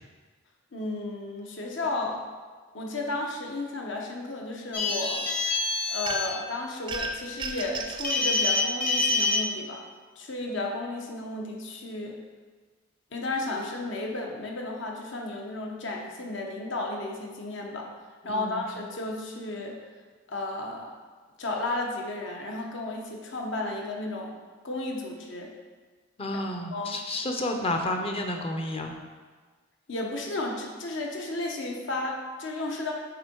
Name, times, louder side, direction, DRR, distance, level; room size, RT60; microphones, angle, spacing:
voice 1, 0.7-2.2 2.7-5.3 5.9-9.8 10.2-12.2 13.1-17.9 18.2-19.8 20.3-20.9 21.4-24.3 24.6-25.5 26.7-27.0 29.9-32.9, left 2 dB, 65° left, 0 dB, 1.0 m, -33 dB
sound 1, 4.7-6.3 8.0-9.4, left 3 dB, 45° left, 1.2 m, -26 dB
sound 2, 6.1-6.5 6.9-8.2, right 2 dB, 25° right, 0.5 m, -34 dB
voice 2, 18.2-18.6 26.2-29.0, left 1 dB, 30° left, 3 dB, 0.6 m, -31 dB
6.6 x 4.5 x 4.5 m, 1.4 s
head